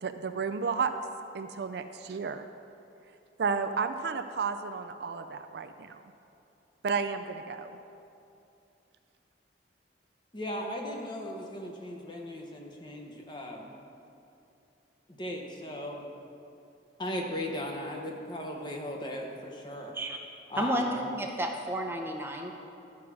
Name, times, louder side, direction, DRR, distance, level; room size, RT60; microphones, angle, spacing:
voice 1, 0.0-0.9 1.3-2.4 3.4-6.0 6.8-7.7, right 5 dB, 55° right, 8 dB, 0.4 m, -32 dB
voice 2, 10.3-13.7 15.2-16.0 17.0-19.9 20.5-21.0, left 1 dB, 25° left, 1 dB, 0.9 m, -37 dB
voice 3, 20.5-22.6, right 1 dB, 10° right, 2 dB, 0.6 m, -32 dB
12.0 x 4.7 x 6.1 m, 2.7 s
head